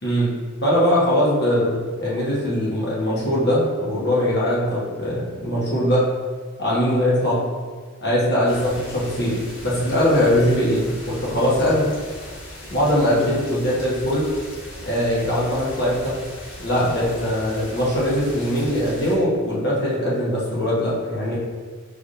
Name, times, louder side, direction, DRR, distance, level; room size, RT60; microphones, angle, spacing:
voice 1, 0.0-0.4 0.6-6.1 6.6-7.4 8.0-12.0 12.7-14.3 14.8-16.2 16.6-21.4, equal, 55° left, -6 dB, 1.2 m, -21 dB
sound 1, 8.5-19.2, left 1 dB, 80° left, 1.2 m, -38 dB
5.1 x 3.6 x 2.6 m, 1.5 s
head